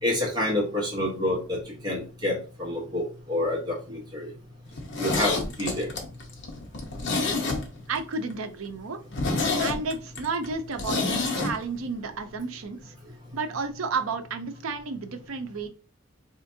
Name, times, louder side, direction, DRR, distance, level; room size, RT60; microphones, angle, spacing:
voice 1, 0.0-4.3 5.0-5.9, left 1 dB, 20° right, -3 dB, 1.1 m, -28 dB
Zipper (clothing), 4.7-8.0 8.3-8.4 8.7-8.8 9.1-11.5 11.8-11.9, left 3 dB, 55° left, 0.8 m, -28 dB
voice 2, 7.9-9.0 9.6-11.0 11.3-12.9 13.3-15.7, right 4 dB, 75° right, 7 dB, 0.5 m, -32 dB
4.3 x 2.5 x 2.6 m, 0.35 s
head